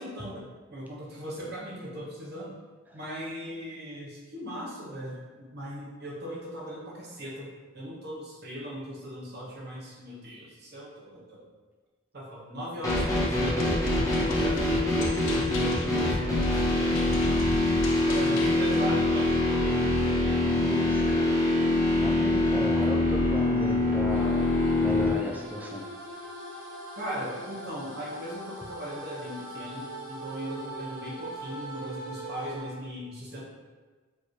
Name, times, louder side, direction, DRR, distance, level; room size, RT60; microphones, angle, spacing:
voice 1, 0.0-2.6 2.9-11.4 12.1-13.7 14.2-16.7 16.9-17.6 18.1-19.8 27.0-33.4, equal, 50° right, -4 dB, 0.9 m, -38 dB
sound 1, 12.8-25.1, left 2 dB, 15° left, 0.7 m, -24 dB
sound 2, 12.9-18.5, left 2 dB, 60° left, 0.4 m, -37 dB
voice 2, 20.5-21.3 22.0-25.8, equal, 10° right, -2 dB, 0.4 m, -35 dB
sound 3, 24.1-32.6, right 1 dB, 65° right, 1.1 m, -41 dB
4.5 x 2.9 x 3.1 m, 1.4 s
head